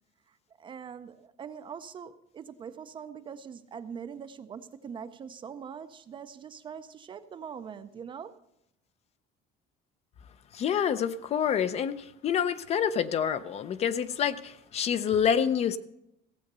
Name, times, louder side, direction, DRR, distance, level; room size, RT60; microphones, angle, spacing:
voice 1, 0.6-8.4, right 7 dB, 25° right, 0.5 m, -42 dB
voice 2, 10.5-12.0 12.2-15.8, left 8 dB, 35° left, 0.5 m, -27 dB
16.0 x 7.8 x 6.7 m
cardioid pair, 165°, 19 cm